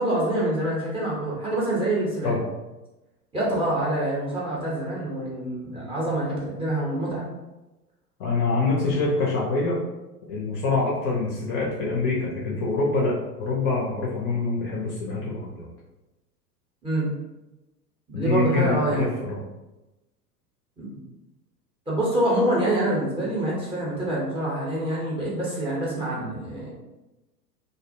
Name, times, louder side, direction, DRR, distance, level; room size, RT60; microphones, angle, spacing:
voice 1, 0.0-2.4 3.3-7.2 16.8-17.1 18.1-19.1 20.8-20.9 21.9-26.7, right 1 dB, 10° right, -7 dB, 0.6 m, -26 dB
voice 2, 8.2-9.8 10.3-13.1 13.4-15.7 18.1-19.4, left 3 dB, 35° left, -4 dB, 0.5 m, -25 dB
2.5 x 2.0 x 2.6 m, 1.0 s
figure-of-eight pair, 90°, 48 cm